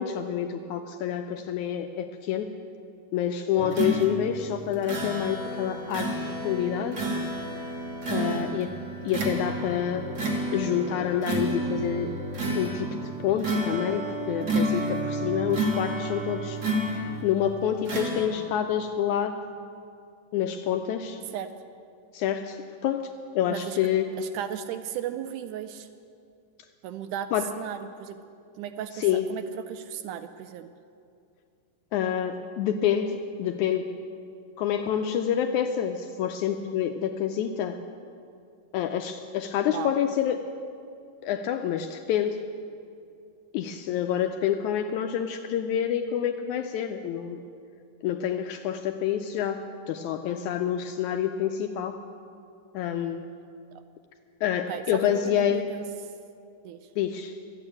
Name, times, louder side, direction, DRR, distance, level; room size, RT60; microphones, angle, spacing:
voice 1, 0.0-2.5 3.1-7.0 8.1-8.7 9.1-10.1 10.5-12.1 12.6-12.9 13.2-16.6 17.2-19.4 20.3-21.2 22.1-22.6 22.8-23.1 23.4-24.1 27.3-27.5 29.0-29.3 31.9-33.9 34.6-37.8 38.7-40.4 41.2-42.4 43.5-47.4 48.0-52.0 52.7-53.2 54.4-55.7 57.0-57.4, left 9 dB, 80° left, 6 dB, 1.7 m, -27 dB
sound 1, 3.6-17.4 17.9-18.3, right 1 dB, 50° right, 1.3 m, -30 dB
voice 2, 8.1-8.6 21.3-21.5 23.5-23.8 24.2-25.9 26.8-27.3 27.6-28.2 28.6-30.7 39.7-39.9 54.7-55.9 56.7-56.9, right 10 dB, 80° right, 10 dB, 1.9 m, -36 dB
13.0 x 9.0 x 8.6 m, 2.4 s
omnidirectional pair, 3.8 m